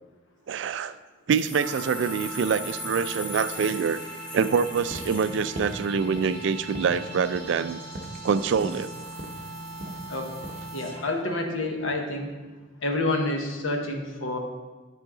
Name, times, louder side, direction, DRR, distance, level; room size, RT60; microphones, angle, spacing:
voice 1, 0.5-1.0 1.3-4.0 4.3-7.8 8.2-8.9, right 6 dB, 70° right, 14 dB, 0.3 m, -25 dB
sound 1, 1.3-6.1, left 1 dB, 25° left, 1.0 m, -40 dB
sound 2, 1.5-11.2, right 1 dB, 5° left, 2.6 m, -40 dB
sound 3, 4.9-10.7, right 1 dB, 40° right, 0.8 m, -39 dB
voice 2, 10.7-12.3 12.8-14.4, left 2 dB, 85° left, 3 dB, 1.1 m, -28 dB
10.0 x 5.6 x 3.8 m, 1.3 s
head